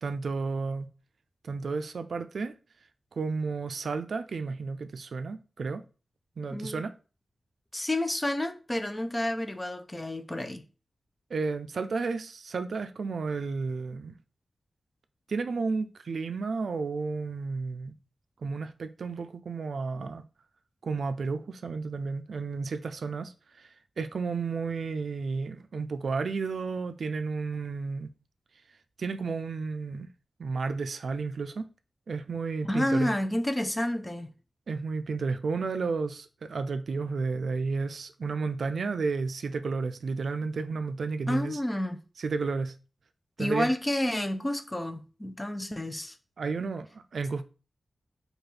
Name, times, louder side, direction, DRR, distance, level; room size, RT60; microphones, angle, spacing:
voice 1, 0.0-0.9 1.4-2.5 3.2-5.8 6.4-6.9 11.3-14.2 15.3-17.9 18.4-20.2 20.8-23.3 23.6-23.7 24.0-28.1 29.0-30.1 30.4-31.7 32.1-33.1 34.7-41.6 42.2-42.7 43.4-43.7 46.4-47.4, right 4 dB, 80° right, 0.3 m, -32 dB
voice 2, 6.5-6.8 7.7-10.6 32.7-34.3 41.3-42.0 43.4-46.2, left 1 dB, 20° left, 0.4 m, -30 dB
4.7 x 2.3 x 3.2 m
wide cardioid pair, 100°, 0 cm